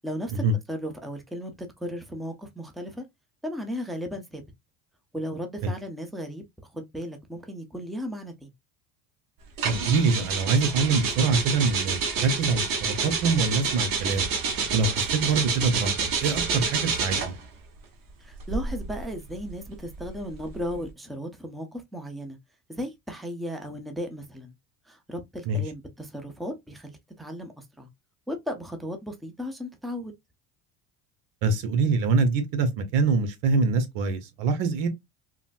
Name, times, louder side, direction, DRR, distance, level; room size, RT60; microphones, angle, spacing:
voice 1, 0.0-0.4 0.7-1.5 1.8-3.0 3.4-4.4 5.1-6.4 6.7-8.5 18.2-22.4 22.7-24.5 24.9-27.9 28.3-30.1, equal, ahead, 0.7 m, -35 dB
sound 1, 9.6-17.5 18.3-20.8, right 5 dB, 45° right, 1.1 m, -28 dB
voice 2, 9.6-14.3 14.7-17.3 25.5-25.6 31.4-34.9, right 4 dB, 65° right, 1.1 m, -24 dB
3.9 x 2.2 x 2.5 m
supercardioid pair, 95°, 46 cm